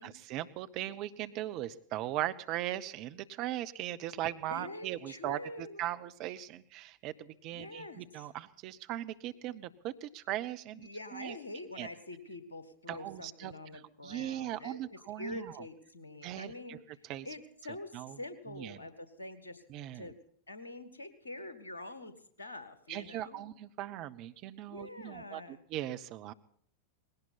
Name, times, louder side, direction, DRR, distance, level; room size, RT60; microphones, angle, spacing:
voice 1, 0.0-11.4 11.7-11.9 12.9-15.6 16.2-16.8 17.0-17.3 17.9-18.2 18.5-18.8 19.7-20.1 22.9-26.3, right 13 dB, 40° right, 11 dB, 0.9 m, -39 dB
voice 2, 4.5-5.9 7.5-8.3 10.7-19.6 19.9-20.2 20.5-23.5 24.7-25.6, left 2 dB, 75° left, 11 dB, 1.7 m, -46 dB
19.5 x 17.5 x 4.2 m, 0.63 s
figure-of-eight pair, 90°, 0 cm